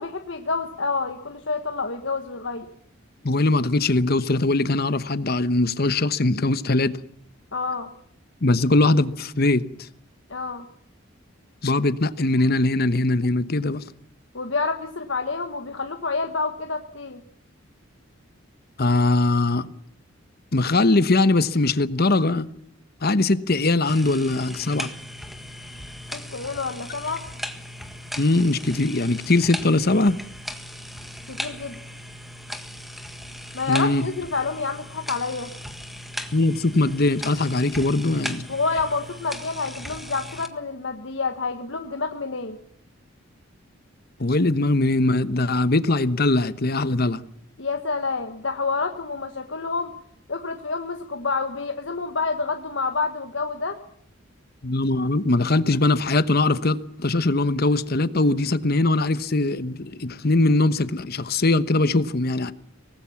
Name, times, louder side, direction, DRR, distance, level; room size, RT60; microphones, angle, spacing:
voice 1, 0.0-2.7 7.5-7.9 10.3-10.6 14.3-17.2 26.1-27.2 31.3-31.8 33.5-35.5 38.5-42.6 47.6-49.9 50.3-53.8, left 4 dB, 65° left, 1.4 m, -28 dB
voice 2, 3.2-7.0 8.4-9.7 11.6-13.8 18.8-19.7 20.5-22.5 23.0-24.9 28.2-30.2 33.7-34.0 36.3-38.4 44.2-47.2 54.6-62.5, left 2 dB, 50° left, 1.1 m, -21 dB
sound 1, 23.8-40.5, equal, ahead, 1.6 m, -37 dB
24.0 x 19.0 x 7.2 m
head